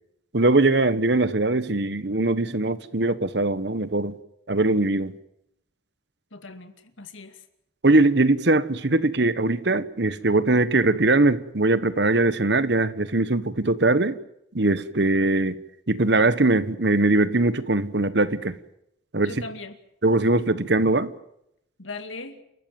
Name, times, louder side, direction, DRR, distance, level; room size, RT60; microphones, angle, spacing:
voice 1, 0.3-4.1 4.5-5.1 7.8-14.2 14.5-15.6 15.9-18.6 19.1-19.3 20.0-21.1, right 2 dB, 60° right, 1.2 m, -21 dB
voice 2, 6.3-7.4 19.2-19.8 21.8-22.4, left 3 dB, 90° left, 2.4 m, -39 dB
29.5 x 14.0 x 9.3 m
head